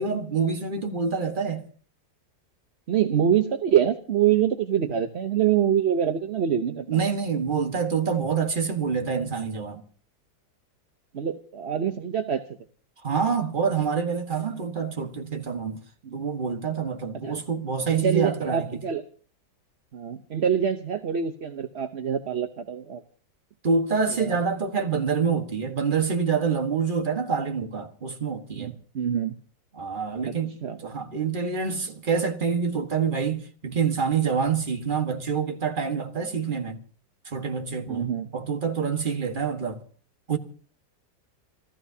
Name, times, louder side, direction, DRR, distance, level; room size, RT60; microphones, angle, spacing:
voice 1, 0.0-1.6 6.9-9.8 13.0-15.8 16.1-18.8 23.6-28.7 29.8-36.8 37.2-38.1 38.3-39.8 40.3-40.4, right 6 dB, 30° right, 1.5 m, -26 dB
voice 2, 2.9-7.0 11.1-12.4 16.0-16.1 17.2-17.4 17.9-19.0 19.9-23.0 24.2-24.4 28.5-29.3 30.3-30.4 30.6-30.8 37.9-38.3, right 9 dB, 45° right, 0.9 m, -25 dB
29.0 x 14.0 x 2.8 m
omnidirectional pair, 2.0 m